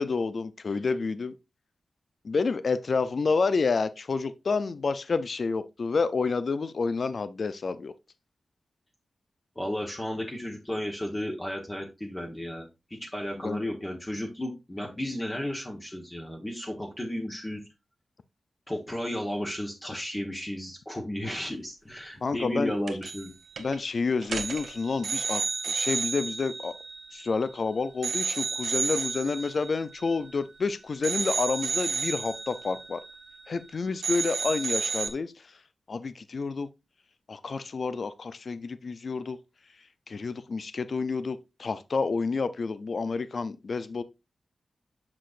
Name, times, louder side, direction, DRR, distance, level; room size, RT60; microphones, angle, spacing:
voice 1, 0.0-1.3 2.2-7.9 13.4-13.6 22.2-22.7 23.6-26.7 27.1-33.0 33.5-35.3 35.9-36.7 37.3-39.4 40.1-44.0, left 4 dB, 55° left, 0.5 m, -29 dB
voice 2, 9.5-17.6 18.7-23.3, left 1 dB, 15° left, 1.2 m, -33 dB
sound 1, 22.9-23.3 23.6-23.8 24.2-27.6 28.0-30.6 31.0-33.7 34.0-35.1, right 5 dB, 80° right, 1.0 m, -32 dB
6.5 x 6.0 x 2.5 m
wide cardioid pair, 110°, 0 cm